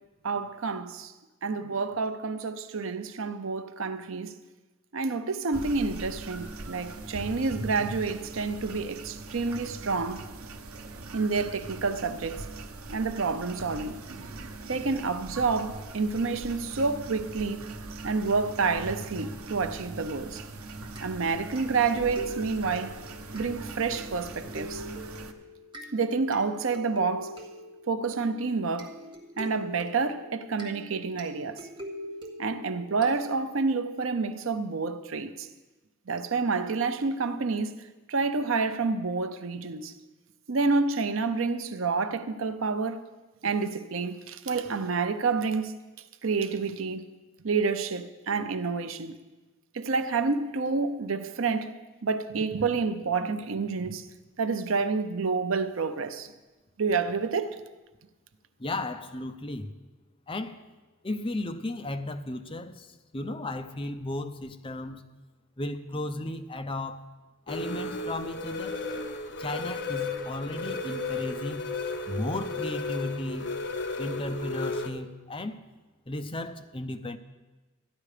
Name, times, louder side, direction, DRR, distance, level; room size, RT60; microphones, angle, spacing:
voice 1, 0.2-1.1 1.4-4.4 4.9-10.2 11.1-12.5 12.9-14.0 14.7-17.7 18.0-20.4 21.0-23.0 23.3-24.8 25.9-27.4 27.9-28.9 29.4-31.6 32.4-35.5 36.1-37.7 38.1-39.9 40.5-43.0 43.4-45.8 46.2-47.0 47.4-49.1 49.7-51.8 52.0-54.0 54.4-56.3 56.8-57.6, right 4 dB, 65° right, 0.7 m, -29 dB
sound 1, 5.5-25.3, right 2 dB, 85° right, 0.9 m, -41 dB
sound 2, 21.0-33.7, equal, 20° right, 1.6 m, -44 dB
voice 2, 58.6-59.7 60.3-60.6 61.0-65.0 65.6-67.1 67.5-68.8 69.4-71.7 72.1-73.5 74.0-75.6 76.1-77.2, left 2 dB, 25° left, 0.7 m, -35 dB
sound 3, 67.5-74.9, left 3 dB, 55° left, 0.9 m, -34 dB
13.5 x 11.0 x 5.0 m
head